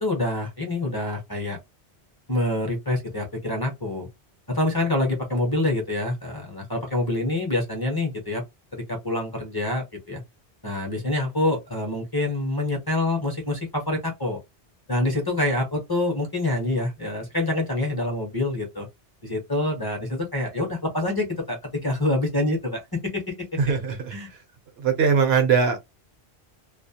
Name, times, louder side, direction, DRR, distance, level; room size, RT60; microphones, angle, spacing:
voice 1, 0.0-1.6 2.3-4.1 4.5-8.4 8.7-10.2 10.6-14.4 14.9-18.9 19.2-23.5 24.1-24.3, left 2 dB, 25° left, 0.6 m, -26 dB
voice 2, 23.6-24.2 24.8-25.8, right 6 dB, 70° right, 0.9 m, -21 dB
2.3 x 2.0 x 2.7 m
omnidirectional pair, 1.1 m